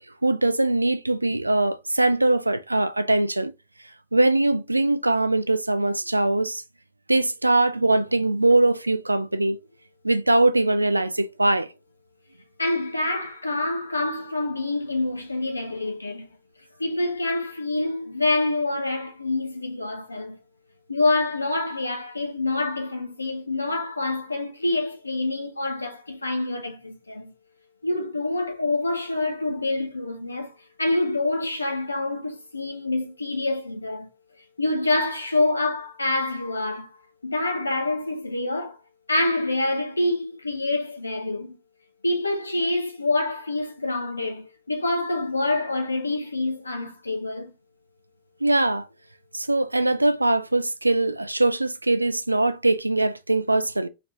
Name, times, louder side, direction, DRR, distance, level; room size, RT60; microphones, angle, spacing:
voice 1, 0.2-3.5 4.1-6.6 7.1-9.6 10.0-11.7 48.4-48.9 49.3-53.9, right 2 dB, 85° right, 0.3 m, -22 dB
voice 2, 12.6-16.3 16.8-20.4 20.9-27.3 27.8-34.1 34.6-38.8 39.1-41.6 42.0-47.5, left 2 dB, 80° left, 0.8 m, -26 dB
5.0 x 2.9 x 2.5 m
figure-of-eight pair, 90°, 0 cm